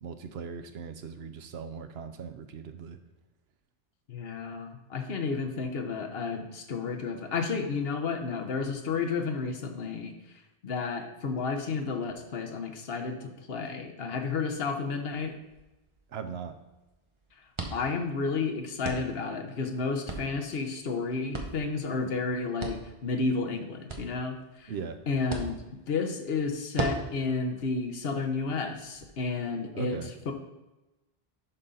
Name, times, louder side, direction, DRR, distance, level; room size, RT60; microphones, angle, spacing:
voice 1, 0.0-3.0 16.1-16.6 24.7-25.0 29.7-30.1, right 6 dB, 80° right, 8 dB, 0.9 m, -39 dB
voice 2, 4.1-10.1 10.6-15.3 17.7-24.7 25.1-25.6 25.9-30.0 30.3-30.4, left 4 dB, 70° left, 5 dB, 1.1 m, -31 dB
sound 1, 15.0-29.1, right 2 dB, 30° right, 0.9 m, -42 dB
11.0 x 3.8 x 4.1 m, 1.0 s
omnidirectional pair, 1.1 m